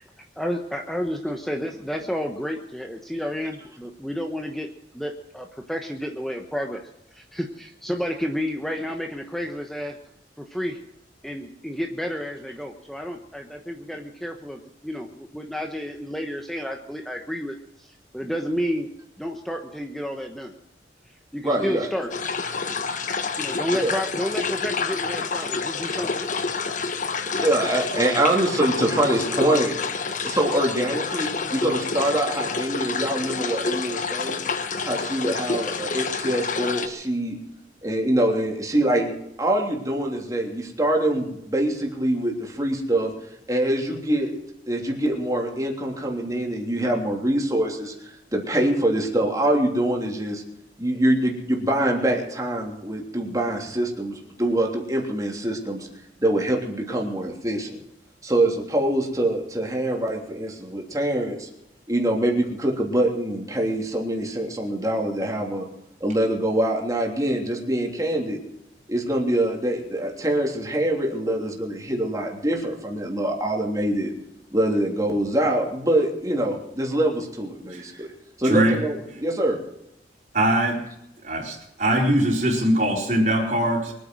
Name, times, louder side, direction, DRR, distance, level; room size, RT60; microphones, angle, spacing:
voice 1, 0.4-4.7 4.9-6.8 7.1-10.0 10.4-10.8 11.2-18.9 19.2-20.5 21.3-22.1 23.4-26.2, equal, ahead, 3 dB, 1.1 m, -31 dB
voice 2, 21.4-21.9 23.7-24.0 27.3-29.7 30.2-34.4 34.8-37.4 37.8-39.1 39.4-43.1 43.5-44.3 44.7-50.4 50.8-55.9 56.2-57.8 58.2-61.5 61.9-65.7 66.0-68.4 68.9-74.1 74.5-78.1 78.4-79.6, right 1 dB, 20° right, 0 dB, 3.2 m, -24 dB
sound 1, 22.1-36.9, left 4 dB, 45° left, 1.2 m, -28 dB
voice 3, 78.4-78.8 80.3-80.8 81.2-83.9, right 1 dB, 45° right, 0 dB, 4.2 m, -21 dB
23.5 x 9.4 x 6.3 m, 0.80 s
head